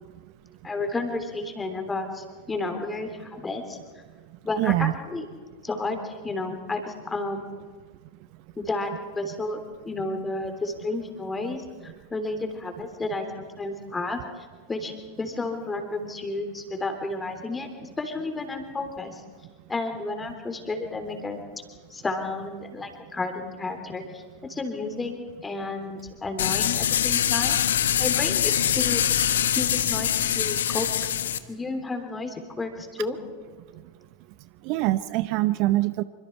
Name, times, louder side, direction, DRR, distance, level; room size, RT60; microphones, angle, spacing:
voice 1, 0.6-3.8 4.4-5.3 5.6-7.5 8.6-14.2 14.7-19.2 19.7-21.4 21.9-27.6 28.0-29.0 29.5-30.9 31.5-33.2, left 3 dB, 15° left, 6 dB, 3.6 m, -32 dB
voice 2, 4.6-4.9 34.6-36.0, right 17 dB, 45° right, 15 dB, 0.7 m, -23 dB
sound 1, 26.4-31.4, left 10 dB, 60° left, 1.2 m, -24 dB
27.0 x 24.5 x 4.7 m, 1.5 s
figure-of-eight pair, 90°, 0 cm